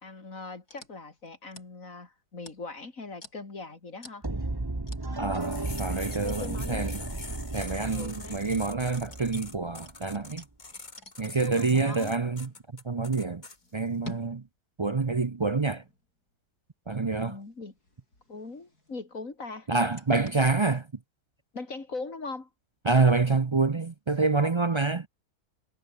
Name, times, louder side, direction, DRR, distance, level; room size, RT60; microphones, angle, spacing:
voice 1, 0.0-4.3 6.2-6.9 7.9-8.4 11.3-12.1 17.2-17.7 18.3-19.7 21.5-22.5, left 3 dB, 60° left, 3.7 m, -40 dB
sound 1, 0.7-1.7 2.4-2.9 3.2-3.4 4.0-4.2 4.9-5.0 5.8-6.5 6.8-11.6 12.1-12.7 13.6-14.4 15.3-16.2 17.2-19.1 19.7-20.5, left 2 dB, 85° left, 8.4 m, -49 dB
sound 2, 4.2-10.2, right 2 dB, 15° right, 1.4 m, -35 dB
voice 2, 5.2-7.0 7.5-10.4 11.2-12.5 12.8-13.4 13.7-14.4 14.8-15.8 16.9-17.4 19.7-20.9 22.9-25.1, right 3 dB, 45° right, 0.3 m, -27 dB
sound 3, 5.4-13.6, left 3 dB, 30° left, 2.0 m, -44 dB
omnidirectional pair, 1.6 m